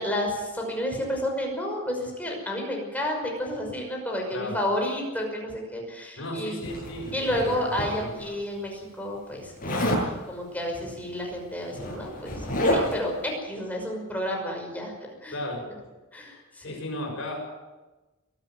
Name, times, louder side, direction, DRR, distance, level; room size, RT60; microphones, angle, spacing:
voice 1, 0.0-6.6 7.1-9.5 10.3-12.4 12.7-14.9 15.2-15.3 16.1-16.8, left 1 dB, 10° left, 0 dB, 5.8 m, -31 dB
voice 2, 6.2-8.1 9.7-10.1 15.3-15.6 16.6-17.4, left 1 dB, 70° left, 1 dB, 6.8 m, -34 dB
Zipper (clothing), 6.6-8.3 9.6-10.1 11.2-11.3 11.6-13.1, equal, 45° left, 7.6 m, -28 dB
23.0 x 13.0 x 9.3 m, 1.1 s
head